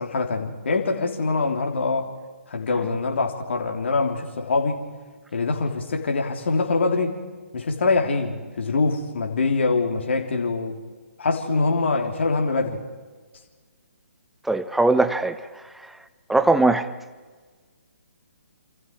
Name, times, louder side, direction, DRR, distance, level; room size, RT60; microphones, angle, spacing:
voice 1, 0.0-2.1 2.5-4.8 5.3-7.2 7.5-10.8 11.2-12.8, left 3 dB, 55° left, 3.5 m, -24 dB
voice 2, 14.5-15.4 16.3-16.9, right 2 dB, ahead, 0.8 m, -19 dB
28.0 x 27.5 x 4.8 m
figure-of-eight pair, 135°, 7 cm